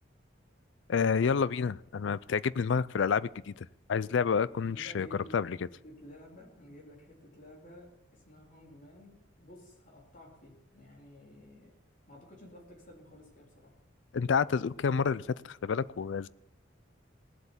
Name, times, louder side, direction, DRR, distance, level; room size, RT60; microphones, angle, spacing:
voice 1, 0.9-5.1 5.3-5.6 14.1-16.3, left 6 dB, 65° left, 18 dB, 0.4 m, -29 dB
voice 2, 4.7-11.7 12.1-13.7, left 1 dB, 40° left, -2 dB, 3.7 m, -53 dB
18.0 x 7.9 x 7.3 m, 0.89 s
head